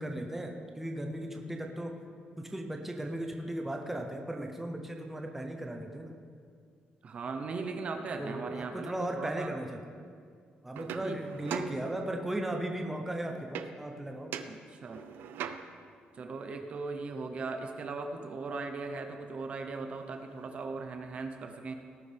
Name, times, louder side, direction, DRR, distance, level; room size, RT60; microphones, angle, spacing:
voice 1, 0.0-2.0 2.4-6.1 8.2-9.8 10.6-14.3, right 1 dB, 5° right, 2 dB, 0.8 m, -36 dB
voice 2, 7.0-9.5 11.0-11.2 14.5-15.1 16.1-21.8, right 4 dB, 40° right, 5 dB, 0.8 m, -38 dB
sound 1, 10.7-12.4 13.5-14.0 14.3-16.0 19.2-19.3 19.6-20.6, right 8 dB, 90° right, 0.6 m, -42 dB
18.5 x 9.8 x 3.5 m, 2.2 s
cardioid pair, 175°, 3 cm